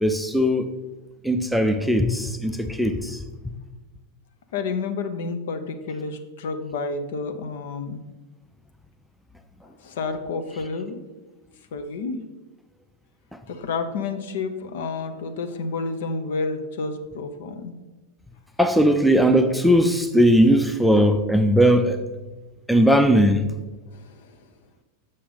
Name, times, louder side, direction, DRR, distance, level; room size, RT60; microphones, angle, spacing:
voice 1, 0.0-0.7 1.2-3.3 18.6-22.0 22.7-23.5, equal, ahead, 0.5 m, -19 dB
voice 2, 4.5-8.0 9.6-11.0 11.7-12.2 13.5-17.7 23.9-24.4, left 4 dB, 55° left, 0.7 m, -30 dB
7.4 x 6.4 x 4.1 m
figure-of-eight pair, 90°, 0 cm